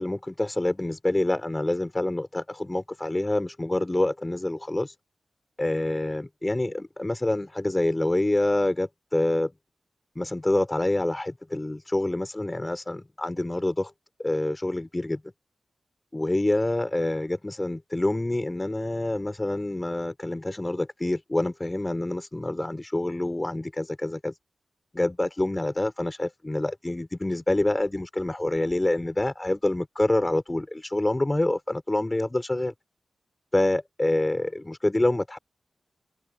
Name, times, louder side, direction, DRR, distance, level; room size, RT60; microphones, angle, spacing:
voice 1, 0.0-4.9 5.6-9.5 10.2-13.9 14.2-15.2 16.1-24.3 24.9-32.7 33.5-35.4, left 1 dB, 20° left, 5.8 m, -27 dB
open air
cardioid pair, 55°, 0 cm